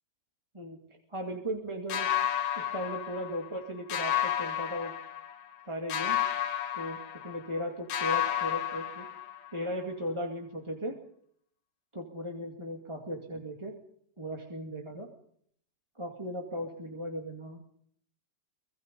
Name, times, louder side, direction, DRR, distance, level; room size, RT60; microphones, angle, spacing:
voice 1, 1.1-2.1 2.5-4.9 5.7-6.2 6.7-7.0 7.2-9.1 9.5-11.0 11.9-13.7 14.2-15.1 16.0-17.6, equal, 10° right, 2 dB, 1.6 m, -37 dB
sound 1, 1.9-3.6 3.9-5.6 5.9-7.6 7.9-9.6, left 10 dB, 75° left, 3.2 m, -32 dB
24.5 x 21.0 x 5.4 m, 0.64 s
omnidirectional pair, 3.9 m